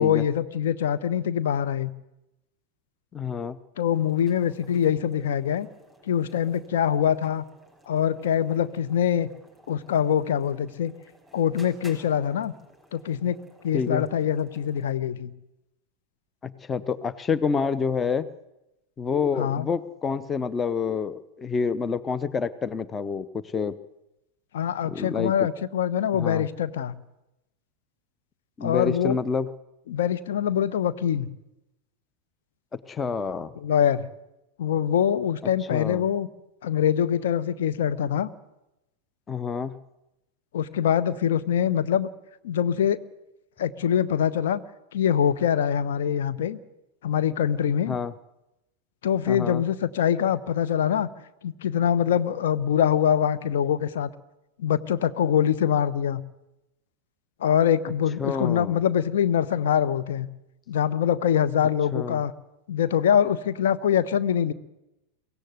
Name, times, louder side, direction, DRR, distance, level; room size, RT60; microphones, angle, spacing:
voice 1, 0.0-1.9 3.8-5.7 6.1-7.4 7.9-9.3 9.7-10.9 11.3-12.5 12.9-13.4 13.6-15.3 19.4-19.7 24.5-26.9 28.6-29.2 29.9-31.3 33.6-34.0 34.6-36.3 36.6-38.3 40.5-42.1 42.4-43.0 43.6-44.6 44.9-46.6 47.0-47.9 49.0-51.1 51.4-54.1 54.6-56.2 57.4-60.3 60.7-62.3 62.7-64.5, left 9 dB, 60° left, 13 dB, 1.0 m, -24 dB
voice 2, 3.1-3.6 13.7-14.1 16.4-18.3 19.0-23.8 24.9-25.3 26.1-26.4 28.6-29.5 32.7-33.5 35.7-36.0 39.3-39.7 47.9-48.1 49.3-49.6 58.2-58.8 61.9-62.2, left 5 dB, 20° left, 16 dB, 0.8 m, -28 dB
sound 1, 3.9-15.0, right 1 dB, 5° left, 6.1 m, -56 dB
23.5 x 16.5 x 8.0 m, 0.92 s
figure-of-eight pair, 90°, 0 cm